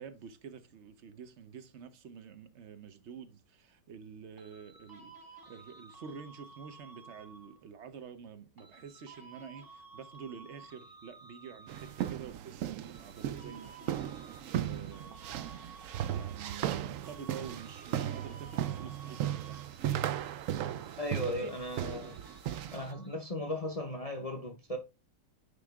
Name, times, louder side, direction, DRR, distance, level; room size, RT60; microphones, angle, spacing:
voice 1, 0.0-14.1 14.6-15.3 16.1-19.6 21.3-21.6, right 6 dB, 50° right, 0.9 m, -48 dB
sound 1, 4.4-7.7 8.6-12.4 12.8-16.8 17.0-23.4, right 3 dB, 15° right, 0.9 m, -54 dB
sound 2, 11.7-22.9, right 11 dB, 80° right, 0.7 m, -36 dB
voice 2, 21.0-22.2 22.7-24.8, left 1 dB, 50° left, 0.4 m, -36 dB
9.4 x 3.8 x 3.5 m
omnidirectional pair, 2.0 m